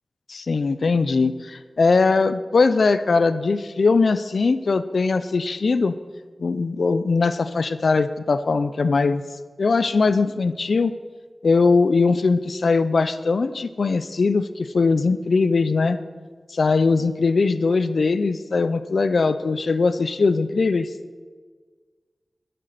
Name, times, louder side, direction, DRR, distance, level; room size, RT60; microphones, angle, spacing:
voice 1, 0.3-5.9 6.4-9.2 9.6-10.9 11.4-16.0 16.5-20.9, left 4 dB, 75° left, 13 dB, 0.4 m, -20 dB
10.5 x 6.7 x 7.6 m, 1.5 s
wide cardioid pair, 85°, 0 cm